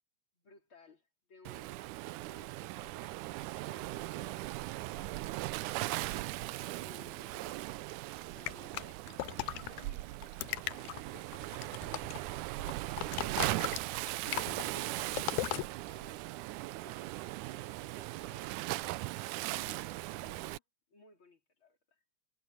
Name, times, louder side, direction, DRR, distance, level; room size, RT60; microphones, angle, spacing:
voice 1, 0.3-1.9 2.3-5.2 6.7-7.7 8.1-11.7 12.1-12.7 13.2-18.6 19.4-20.6 20.9-22.0, left 3 dB, 40° left, 4.1 m, -60 dB
Waves surf, 1.5-20.6, right 18 dB, 85° right, 2.1 m, -39 dB
sound 1, 8.5-9.8 10.2-12.3 12.6-15.7, left 17 dB, 85° left, 2.1 m, -37 dB
omnidirectional pair, 3.5 m